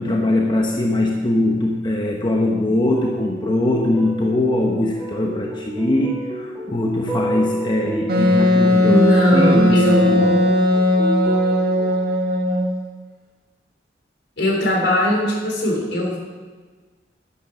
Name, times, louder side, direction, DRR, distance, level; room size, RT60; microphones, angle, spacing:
voice 1, 0.0-9.0 9.3-10.3, left 1 dB, 25° left, 0 dB, 0.9 m, -21 dB
sound 1, 2.9-11.9, right 1 dB, 5° left, 2.3 m, -30 dB
Wind instrument woodwind instrument, 8.1-12.7, left 1 dB, 55° right, 1.8 m, -17 dB
voice 2, 8.8-10.5 14.4-16.2, equal, 70° left, -1 dB, 3.7 m, -20 dB
11.0 x 8.5 x 6.2 m, 1.4 s
head